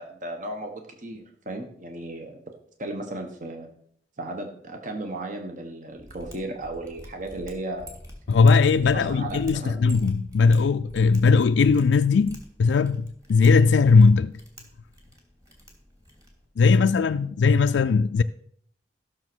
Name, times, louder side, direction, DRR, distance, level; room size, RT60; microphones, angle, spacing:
voice 1, 0.0-2.4 2.8-3.7 4.2-7.9 8.4-9.8 16.6-16.8, right 2 dB, 45° right, 1.3 m, -35 dB
Mechanisms, 6.0-16.4, equal, 20° right, 2.7 m, -46 dB
voice 2, 8.3-14.3 16.6-18.2, left 4 dB, 80° left, 0.4 m, -19 dB
14.0 x 6.4 x 6.2 m
head